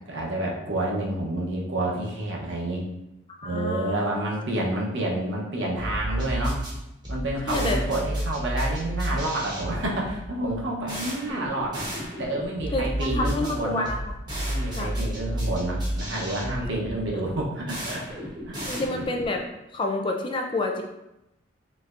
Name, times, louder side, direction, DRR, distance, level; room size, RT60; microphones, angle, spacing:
voice 1, 0.1-2.8 3.4-6.6 7.1-11.9 12.2-13.9 14.5-18.0 18.5-18.6 18.9-19.0, right 1 dB, 70° right, -2 dB, 0.8 m, -29 dB
voice 2, 3.3-4.1 7.5-7.8 12.7-14.0 14.7-15.0 17.1-17.2 18.7-19.4 19.7-20.8, left 2 dB, 25° left, 3 dB, 0.3 m, -28 dB
sound 1, 5.8-19.4, right 1 dB, 20° right, 0.9 m, -32 dB
4.1 x 3.2 x 2.4 m, 0.90 s
head